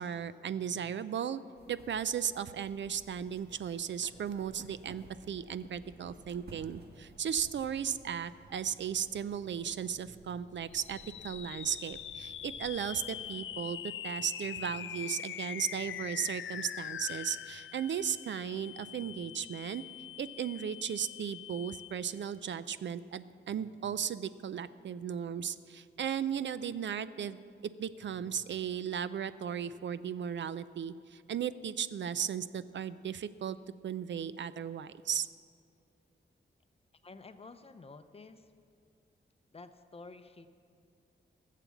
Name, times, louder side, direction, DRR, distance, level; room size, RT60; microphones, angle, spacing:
voice 1, 0.0-1.4 1.7-11.0 11.2-13.8 14.0-19.8 20.2-27.4 27.8-33.6 33.8-35.3, right 8 dB, 70° right, 15 dB, 0.4 m, -36 dB
sound 1, 1.6-13.3, right 2 dB, 55° right, 1.4 m, -56 dB
sound 2, 10.7-22.3, left 10 dB, 85° left, 0.4 m, -43 dB
voice 2, 37.0-38.5 39.5-40.5, left 3 dB, 30° left, 10 dB, 0.6 m, -51 dB
15.5 x 7.5 x 7.0 m, 2.3 s
wide cardioid pair, 165°, 20 cm